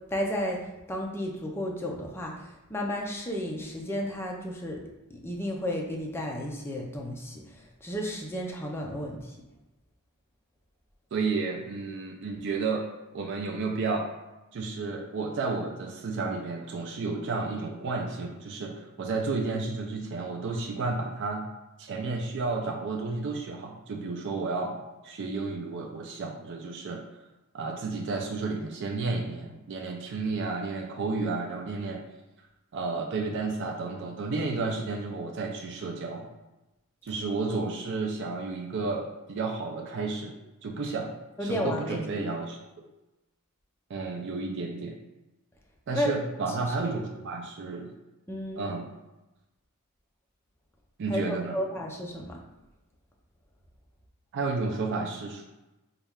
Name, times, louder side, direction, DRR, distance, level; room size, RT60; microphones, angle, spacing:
voice 1, 0.1-4.8 5.1-9.3 41.4-42.3 45.9-46.1 46.9-47.0 48.3-48.7 51.1-52.4, equal, 10° left, -1 dB, 0.5 m, -33 dB
voice 2, 11.1-12.9 13.1-14.1 14.5-21.4 21.8-24.8 25.0-27.0 27.5-32.0 32.7-36.3 37.0-40.3 40.6-41.1 41.4-42.6 43.9-45.0 45.9-47.9 48.6-48.9 51.0-51.6 54.3-55.4, right 3 dB, 55° right, 1 dB, 0.4 m, -32 dB
4.0 x 2.3 x 3.5 m, 1.0 s
head